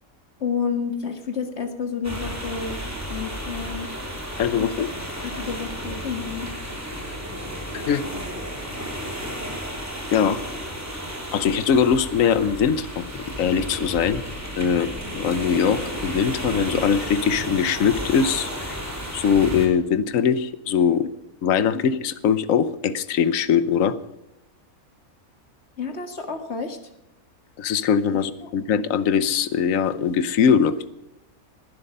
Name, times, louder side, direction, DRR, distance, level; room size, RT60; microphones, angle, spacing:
voice 1, 0.4-2.8 3.1-3.9 4.6-4.9 5.2-6.5 21.7-21.8 25.8-26.8, left 6 dB, 50° left, 6 dB, 2.1 m, -30 dB
sound 1, 2.0-19.7, equal, 10° right, 3.2 m, -33 dB
voice 2, 4.4-4.9 7.7-8.1 10.1-10.4 11.3-13.0 13.4-14.2 14.6-18.8 19.1-21.1 21.4-24.0 27.6-30.9, left 7 dB, 65° left, 14 dB, 1.2 m, -21 dB
18.5 x 11.0 x 5.4 m, 0.89 s
omnidirectional pair, 1.5 m